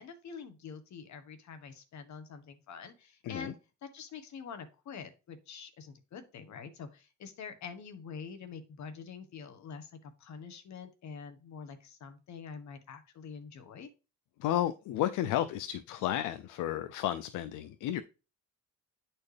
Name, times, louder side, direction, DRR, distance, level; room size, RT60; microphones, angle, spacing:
voice 1, 0.0-3.5 3.8-13.9, left 6 dB, 65° left, 9 dB, 1.3 m, -46 dB
voice 2, 3.2-3.5 14.4-18.0, left 12 dB, 85° left, 12 dB, 0.5 m, -32 dB
9.5 x 4.4 x 3.3 m, 0.32 s
cardioid pair, 90°, 30 cm